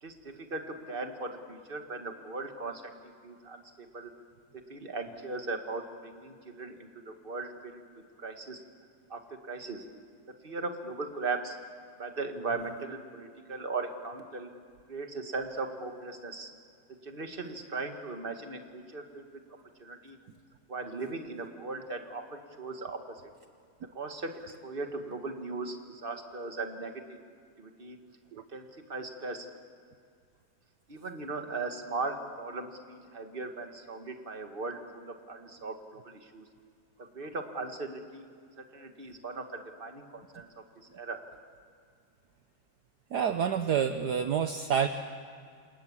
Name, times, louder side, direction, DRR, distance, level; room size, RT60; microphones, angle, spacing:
voice 1, 0.0-4.1 4.7-7.8 8.2-8.6 9.1-9.9 10.4-11.6 12.0-14.5 14.9-16.5 17.0-19.4 19.8-20.2 20.7-23.2 23.9-27.2 27.6-28.0 28.5-29.5 30.9-36.5 37.0-38.3 38.6-40.5 40.8-41.2, right 3 dB, 30° right, 5 dB, 2.0 m, -38 dB
voice 2, 43.1-44.9, right 8 dB, 60° right, 8 dB, 1.4 m, -28 dB
28.0 x 27.5 x 7.4 m, 2.2 s
omnidirectional pair, 2.1 m